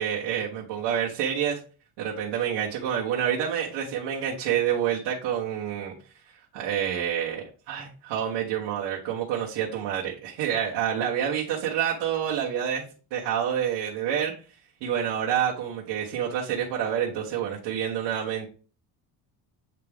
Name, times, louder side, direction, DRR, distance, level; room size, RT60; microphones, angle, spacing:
voice 1, 0.0-1.6 2.0-5.9 6.5-12.9 13.1-14.3 14.8-18.5, right 9 dB, 80° right, -3 dB, 1.4 m, -28 dB
8.3 x 3.5 x 3.5 m, 0.38 s
cardioid pair, 145°, 41 cm